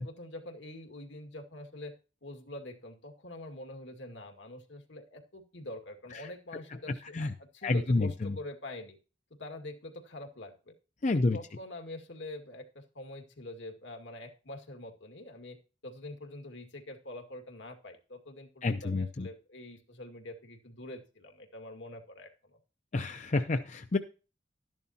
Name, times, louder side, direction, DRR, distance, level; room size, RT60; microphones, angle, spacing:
voice 1, 0.0-1.9 2.2-9.0 9.3-10.7 11.3-15.6 15.8-22.6, left 1 dB, 75° left, 4 dB, 2.1 m, -45 dB
voice 2, 7.6-8.3 11.0-11.4 18.6-19.3 22.9-24.0, left 2 dB, 40° left, 8 dB, 0.6 m, -29 dB
12.5 x 11.0 x 2.8 m, 0.34 s
head